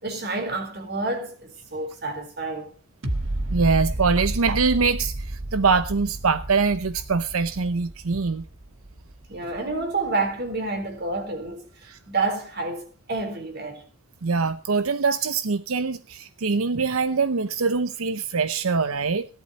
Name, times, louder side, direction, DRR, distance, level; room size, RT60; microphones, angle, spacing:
voice 1, 0.0-2.7 9.3-13.8, right 3 dB, 50° right, 3.9 m, -29 dB
sound 1, 3.0-10.1 10.5-10.6, right 1 dB, 65° right, 1.5 m, -32 dB
voice 2, 3.5-8.4 11.8-12.0 14.2-19.3, right 4 dB, 90° right, 0.8 m, -23 dB
17.0 x 11.5 x 4.3 m
head